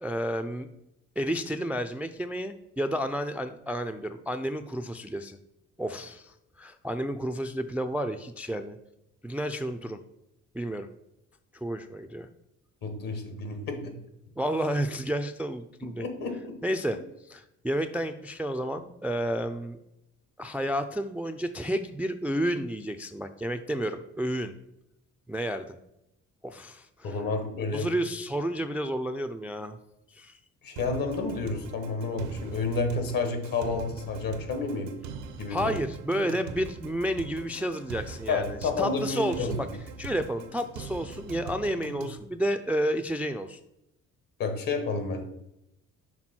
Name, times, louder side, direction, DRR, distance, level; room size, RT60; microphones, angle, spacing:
voice 1, 0.0-0.7 1.2-5.4 5.8-8.8 9.2-10.0 10.5-10.9 11.6-12.3 14.4-16.0 16.6-17.0 17.3-19.8 20.4-24.5 25.3-25.8 26.4-27.2 27.7-29.8 30.1-30.4 35.5-39.7 40.0-43.6, equal, 5° right, 8 dB, 0.3 m, -31 dB
voice 2, 12.8-13.9 15.8-16.6 27.0-27.9 30.6-35.0 35.4-35.8 38.3-39.7 44.4-45.2, left 3 dB, 60° left, 6 dB, 1.4 m, -30 dB
sound 1, 30.8-42.2, right 4 dB, 85° right, 0.7 m, -42 dB
6.1 x 3.7 x 4.3 m, 0.84 s
hypercardioid pair, 50°, 37 cm